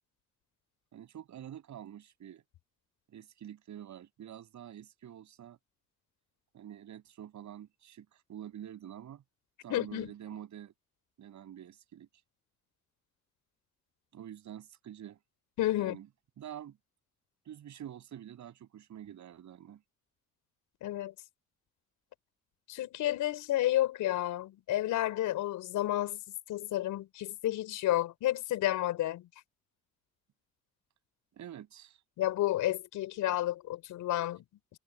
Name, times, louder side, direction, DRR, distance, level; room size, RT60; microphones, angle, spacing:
voice 1, 0.9-2.4 3.1-5.6 6.5-9.2 9.6-10.7 11.2-12.1 14.1-15.2 15.7-16.1 16.4-16.8 17.4-19.8 31.3-32.0, right 10 dB, 70° right, 7.4 m, -47 dB
voice 2, 9.7-10.1 15.6-16.0 20.8-21.1 22.7-26.2 26.5-29.3 32.2-34.4, left 14 dB, 85° left, 5.7 m, -31 dB
cardioid pair, 90°, 30 cm